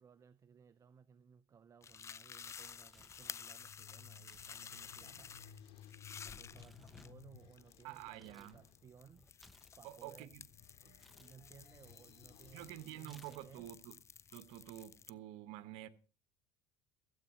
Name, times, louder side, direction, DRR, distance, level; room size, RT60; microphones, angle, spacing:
voice 1, 0.0-5.4 6.2-9.3 9.8-10.3 10.8-13.8, right 6 dB, 30° right, 0.6 m, -61 dB
sound 1, 1.8-15.1, left 7 dB, 30° left, 0.5 m, -53 dB
Tearing, 2.5-3.4 4.2-4.6 4.9-8.6 8.9-10.4 11.0-11.3 13.0-13.7, equal, ahead, 0.9 m, -65 dB
sound 2, 3.3-13.8, left 7 dB, 60° left, 2.1 m, -60 dB
voice 2, 7.8-8.6 9.8-10.4 12.5-14.0 14.3-15.9, right 14 dB, 70° right, 1.0 m, -49 dB
15.0 x 8.3 x 6.1 m
supercardioid pair, 95°, 10 cm